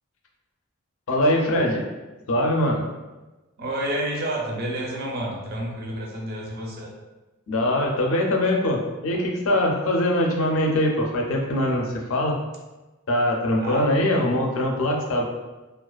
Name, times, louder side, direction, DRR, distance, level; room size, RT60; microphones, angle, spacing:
voice 1, 1.1-1.9 2.3-2.8 7.5-12.4 13.1-15.3, left 1 dB, 65° left, 0 dB, 0.4 m, -22 dB
voice 2, 3.6-6.9 13.6-14.0, right 1 dB, 45° right, -2 dB, 0.5 m, -30 dB
2.3 x 2.3 x 2.2 m, 1.1 s
head